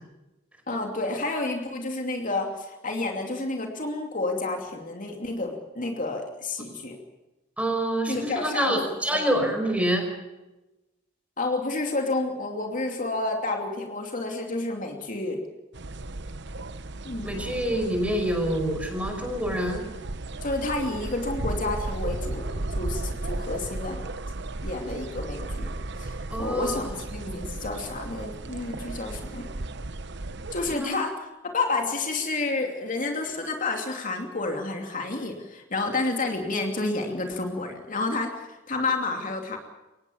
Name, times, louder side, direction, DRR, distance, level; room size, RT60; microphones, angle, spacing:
voice 1, 0.7-7.0 8.1-8.8 11.4-15.4 17.0-17.4 20.4-24.0 24.6-25.7 26.0-29.5 30.5-31.1 31.4-39.6, left 3 dB, 45° left, 3 dB, 2.7 m, -30 dB
voice 2, 7.6-10.1 17.2-19.8 26.3-26.8 27.2-27.6 30.7-30.9, right 1 dB, 5° right, 4 dB, 5.3 m, -27 dB
sound 1, 15.7-30.8, right 2 dB, 60° right, 1.1 m, -34 dB
24.0 x 18.5 x 7.1 m, 1.0 s
head